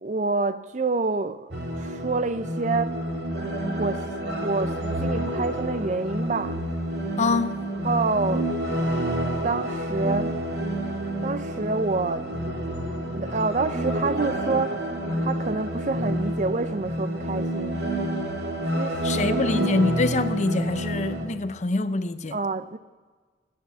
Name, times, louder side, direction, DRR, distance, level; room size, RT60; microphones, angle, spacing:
voice 1, 0.0-3.0 3.8-4.1 4.4-6.6 7.8-8.5 9.4-10.4 11.2-12.3 13.1-14.8 15.2-17.8 18.8-19.4 22.3-22.8, right 3 dB, 45° right, 0.5 m, -27 dB
sound 1, 1.5-21.3, right 1 dB, 70° right, 2.2 m, -28 dB
voice 2, 7.2-7.6 19.0-22.4, left 3 dB, 40° left, 0.6 m, -25 dB
14.0 x 10.5 x 7.3 m
head